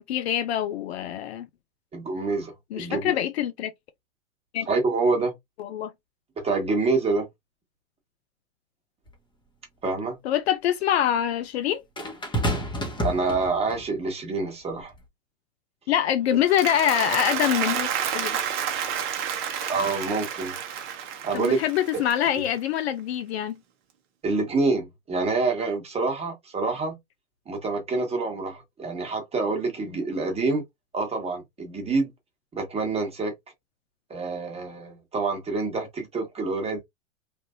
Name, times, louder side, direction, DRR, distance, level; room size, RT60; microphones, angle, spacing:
voice 1, 0.0-1.5 2.7-3.7 4.5-4.7 5.6-5.9 10.2-11.8 15.9-17.9 18.1-18.4 21.3-23.6, left 10 dB, 55° left, 0.5 m, -25 dB
voice 2, 1.9-3.2 4.7-5.3 6.4-7.3 9.8-10.2 13.0-14.9 19.7-20.5 21.2-21.6 22.4-22.5 24.2-27.0 27.5-30.6 30.9-32.1 32.5-33.3 34.1-36.8, right 3 dB, 15° right, 1.3 m, -27 dB
sound 1, 9.1-9.2 12.0-13.9 14.8-15.0, equal, 10° left, 1.1 m, -29 dB
Applause, 16.3-22.7, right 9 dB, 30° right, 0.8 m, -30 dB
3.4 x 2.5 x 2.5 m
hypercardioid pair, 110°, 39 cm